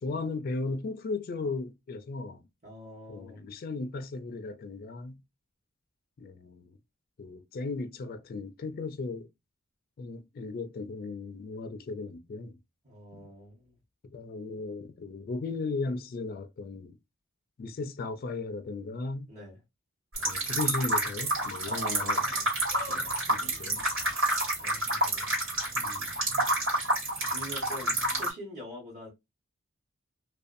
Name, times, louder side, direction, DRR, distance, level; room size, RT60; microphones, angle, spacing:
voice 1, 0.0-2.4 3.1-5.2 6.2-6.8 7.2-9.3 10.0-12.6 13.1-13.3 14.1-17.0 17.6-19.3 20.2-22.2 22.9-23.8 25.8-26.5, left 3 dB, 45° left, 0.3 m, -36 dB
voice 2, 2.6-3.4 12.8-13.8 19.3-19.6 21.7-22.5 24.6-25.4 27.3-29.1, left 1 dB, 35° right, 1.1 m, -45 dB
sound 1, 20.2-28.3, right 1 dB, 85° right, 1.5 m, -29 dB
2.5 x 2.2 x 2.4 m
head